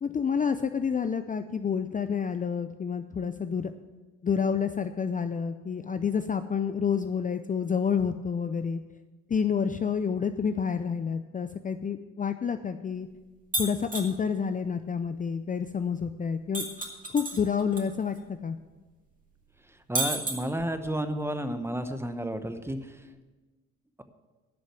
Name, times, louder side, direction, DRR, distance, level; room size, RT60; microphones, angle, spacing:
voice 1, 0.0-3.7 4.2-8.8 9.3-13.1 13.6-16.7 17.1-18.6, left 6 dB, 25° left, 9 dB, 0.5 m, -29 dB
sound 1, 13.5-14.1 16.5-17.8 18.2-18.3 20.0-20.9, right 2 dB, 25° right, 2.2 m, -31 dB
voice 2, 19.9-22.8, right 1 dB, 10° right, 9 dB, 0.9 m, -31 dB
11.0 x 6.3 x 7.6 m, 1.2 s
cardioid pair, 90°, 30 cm